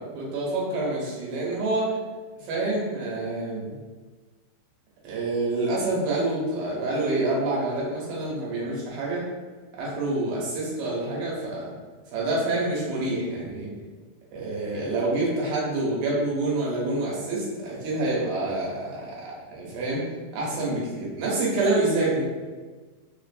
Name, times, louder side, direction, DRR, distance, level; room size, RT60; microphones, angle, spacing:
voice 1, 0.0-1.9 2.4-3.8 5.0-9.2 9.8-11.7 12.1-13.7 14.3-20.0 20.3-22.2, right 2 dB, 75° right, -5 dB, 2.8 m, -27 dB
6.0 x 2.5 x 2.5 m, 1.4 s
omnidirectional pair, 4.5 m